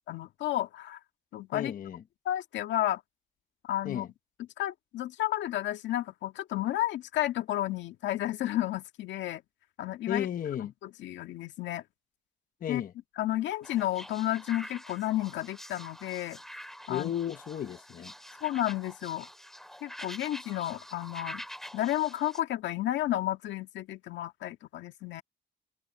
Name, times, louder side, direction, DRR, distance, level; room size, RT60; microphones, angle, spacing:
voice 1, 0.1-1.0 1.3-1.7 2.3-3.0 3.6-4.1 4.6-9.4 9.8-10.3 10.6-11.8 12.7-12.8 13.2-16.4 16.9-17.2 18.4-19.3 19.8-21.4 21.7-25.2, left 14 dB, 80° left, 1.8 m, -32 dB
voice 2, 1.5-2.0 3.8-4.1 10.1-10.7 12.6-12.9 16.9-18.4, left 10 dB, 50° left, 1.1 m, -34 dB
sound 1, 13.6-22.4, equal, ahead, 2.5 m, -46 dB
cardioid pair, 130°, 19 cm